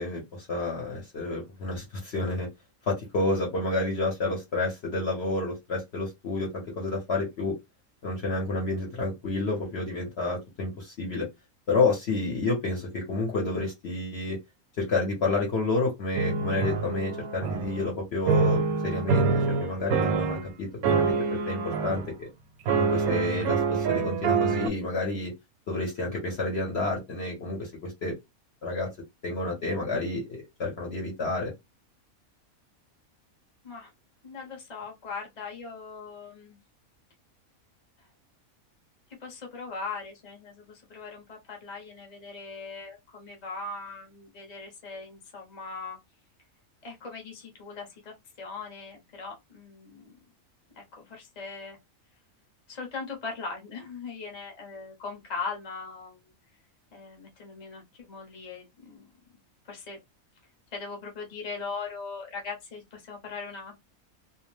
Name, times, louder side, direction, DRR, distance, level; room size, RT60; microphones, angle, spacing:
voice 1, 0.0-2.5 2.9-7.5 8.0-11.3 11.7-14.4 14.8-19.3 19.6-22.3 22.7-25.3 25.7-28.2 28.6-28.9 29.2-31.5, left 2 dB, 55° left, 1.0 m, -30 dB
sound 1, 16.1-17.9 18.3-20.5 20.8-22.1 22.7-24.7, right 4 dB, 85° right, 1.0 m, -26 dB
voice 2, 34.2-36.6 38.0-38.1 39.2-46.0 46.8-50.1 50.8-51.8 52.7-56.2 56.9-59.1 59.6-60.0 60.7-63.8, left 4 dB, 35° left, 0.9 m, -40 dB
2.5 x 2.1 x 3.1 m
omnidirectional pair, 1.5 m